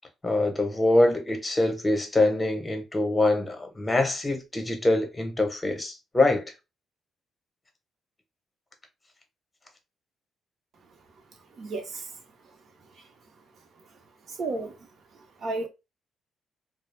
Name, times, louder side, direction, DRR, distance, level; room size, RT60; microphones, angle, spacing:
voice 1, 0.2-6.4, left 2 dB, 20° left, 0.8 m, -24 dB
voice 2, 11.6-12.1 13.0-13.1 14.3-14.8 15.4-15.7, right 3 dB, 60° right, 0.8 m, -32 dB
2.3 x 2.0 x 3.2 m
cardioid pair, 90°, 0 cm